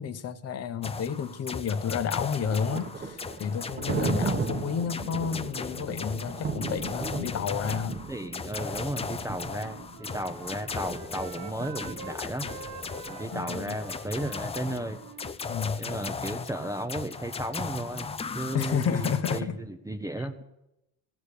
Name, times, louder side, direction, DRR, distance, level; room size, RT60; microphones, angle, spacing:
voice 1, 0.0-8.0 13.3-13.8 15.5-15.8 18.5-19.6 20.2-20.3, left 7 dB, 40° left, 11 dB, 1.0 m, -31 dB
sound 1, 0.8-19.4, left 5 dB, 15° left, 0.5 m, -37 dB
Thunder, 1.7-13.5, right 4 dB, 25° right, 1.1 m, -36 dB
voice 2, 8.1-12.7 13.0-15.0 15.8-20.4, right 1 dB, 10° right, 7 dB, 0.8 m, -34 dB
Wind instrument woodwind instrument, 9.5-12.2 12.4-16.1, right 9 dB, 55° right, 1.2 m, -46 dB
17.0 x 6.8 x 9.9 m, 0.90 s
cardioid pair, 120°, 39 cm